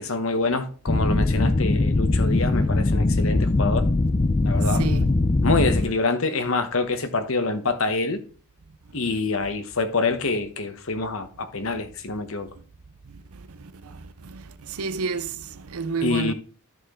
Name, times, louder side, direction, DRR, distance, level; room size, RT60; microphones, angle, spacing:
voice 1, 0.0-3.9 4.4-4.8 5.4-8.2 8.9-12.5 16.0-16.3, left 3 dB, 65° left, 1.0 m, -26 dB
sound 1, 0.9-5.9, left 2 dB, 25° left, 0.5 m, -21 dB
voice 2, 4.7-5.1 13.6-16.3, right 4 dB, 85° right, 0.7 m, -31 dB
12.5 x 4.4 x 3.7 m
head